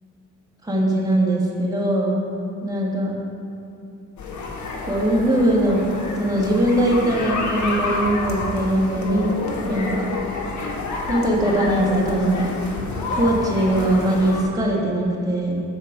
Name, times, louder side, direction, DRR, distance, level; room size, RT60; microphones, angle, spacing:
voice 1, 0.6-2.2 2.6-3.1 4.8-5.9 6.2-9.3 9.6-10.1 11.1-12.5 13.1-15.6, right 1 dB, 10° right, -3 dB, 1.4 m, -21 dB
sound 1, 4.2-14.4, left 3 dB, 70° left, 1.2 m, -28 dB
6.3 x 4.4 x 6.2 m, 2.6 s
cardioid pair, 90°, 30 cm